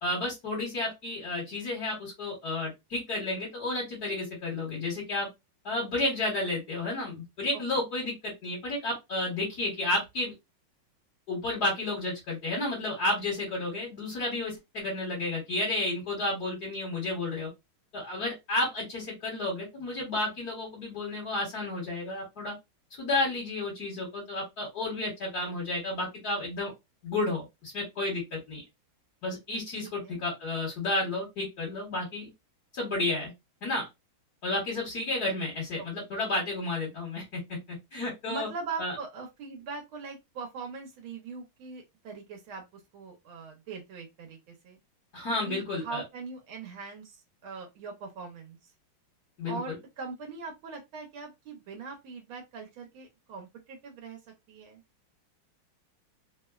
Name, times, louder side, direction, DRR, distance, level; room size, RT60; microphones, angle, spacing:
voice 1, 0.0-5.3 5.6-10.3 11.3-17.5 17.9-22.5 23.0-26.7 27.0-28.6 29.2-32.3 32.7-33.3 33.6-33.9 34.4-37.4 37.9-38.5 38.8-39.0 45.1-46.0 49.4-49.8, left 2 dB, 55° left, 1.4 m, -31 dB
voice 2, 29.8-30.2 35.8-35.9 38.3-42.6 42.9-44.8 45.4-48.6 49.5-54.2 54.5-54.8, right 4 dB, 80° right, 1.5 m, -41 dB
3.5 x 2.1 x 2.2 m
omnidirectional pair, 2.3 m